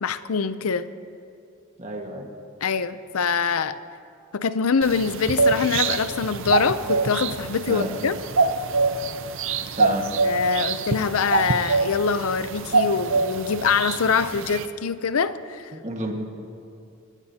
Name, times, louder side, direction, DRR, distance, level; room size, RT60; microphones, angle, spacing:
voice 1, 0.0-0.9 2.6-3.8 4.3-8.2 10.2-15.7, left 5 dB, 75° left, 14 dB, 0.6 m, -24 dB
voice 2, 1.8-2.3 7.7-7.9 9.8-10.0 15.7-16.1, right 1 dB, 30° right, 1 dB, 1.6 m, -30 dB
sound 1, 4.8-14.7, right 3 dB, 60° right, 0.6 m, -25 dB
21.5 x 18.0 x 2.8 m, 2.6 s
head